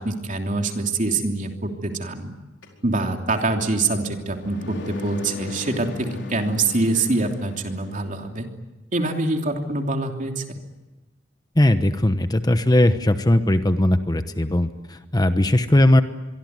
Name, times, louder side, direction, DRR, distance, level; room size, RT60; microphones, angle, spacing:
voice 1, 0.0-2.3 2.8-8.5 8.9-10.6, right 2 dB, 45° right, 3 dB, 3.1 m, -25 dB
sound 1, 2.6-8.2, left 2 dB, 70° left, 4.8 m, -37 dB
voice 2, 11.6-16.0, left 1 dB, 20° left, 9 dB, 1.0 m, -19 dB
26.0 x 23.0 x 9.6 m, 1.1 s
head